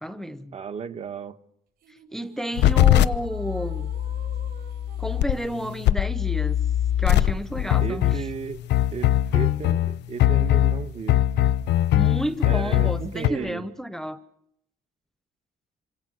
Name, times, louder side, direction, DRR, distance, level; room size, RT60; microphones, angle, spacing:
voice 1, 0.0-0.6 2.1-3.9 5.0-6.6 7.0-8.2 11.9-14.2, equal, ahead, 0.9 m, -31 dB
voice 2, 0.5-1.4 7.8-8.6 8.9-11.2 12.4-13.6, right 6 dB, 40° right, 1.3 m, -34 dB
sound 1, 1.8-6.3, right 6 dB, 60° right, 6.2 m, -50 dB
sound 2, 2.6-13.3, left 12 dB, 85° left, 0.9 m, -21 dB
27.5 x 26.5 x 6.4 m
cardioid pair, 165°, 17 cm